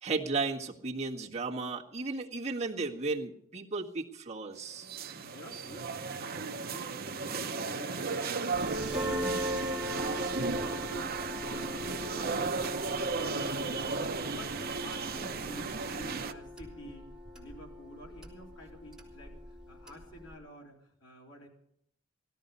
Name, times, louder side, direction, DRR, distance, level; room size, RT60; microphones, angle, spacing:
voice 1, 0.0-4.9, right 3 dB, 35° right, -2 dB, 1.6 m, -34 dB
voice 2, 4.8-14.0 14.3-17.1 17.4-21.5, equal, 65° left, -1 dB, 3.6 m, -51 dB
sound 1, 4.8-16.3, right 4 dB, 50° right, 0.8 m, -35 dB
sound 2, 8.5-20.4, equal, 5° right, 3.7 m, -40 dB
17.5 x 13.5 x 5.5 m, 0.74 s
head